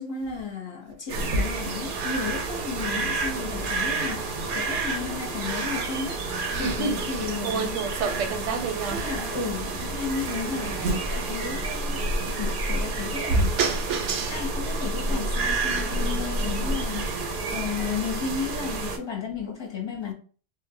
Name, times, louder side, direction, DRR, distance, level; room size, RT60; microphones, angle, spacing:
voice 1, 0.0-7.7 8.9-13.6 14.3-20.1, left 5 dB, 30° left, 0.6 m, -33 dB
sound 1, 1.1-19.0, right 2 dB, 60° right, 0.6 m, -29 dB
voice 2, 6.5-9.0 13.3-14.4 16.4-16.9, right 4 dB, 85° right, 0.9 m, -28 dB
2.1 x 2.1 x 3.5 m
omnidirectional pair, 1.2 m